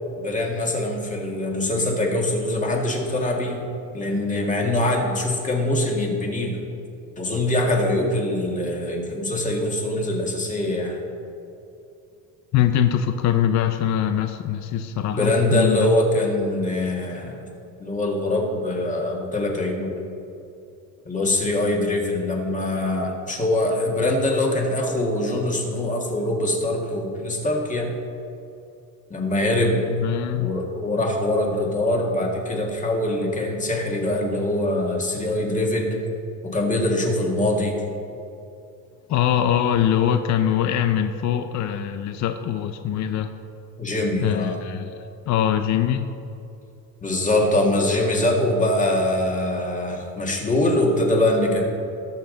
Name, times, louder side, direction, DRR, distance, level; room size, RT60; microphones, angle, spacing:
voice 1, 0.2-3.7 3.9-6.6 7.2-11.0 15.1-17.4 17.8-20.0 21.1-27.9 29.1-29.8 30.4-36.0 36.4-37.8 43.8-44.6 47.0-51.7, left 1 dB, 20° left, 0 dB, 1.8 m, -23 dB
voice 2, 12.5-15.9 29.9-30.5 39.1-43.3 44.2-45.0 45.3-46.1, left 10 dB, 55° left, 8 dB, 0.6 m, -22 dB
18.0 x 7.1 x 3.9 m, 2.8 s
cardioid pair, 145°, 35 cm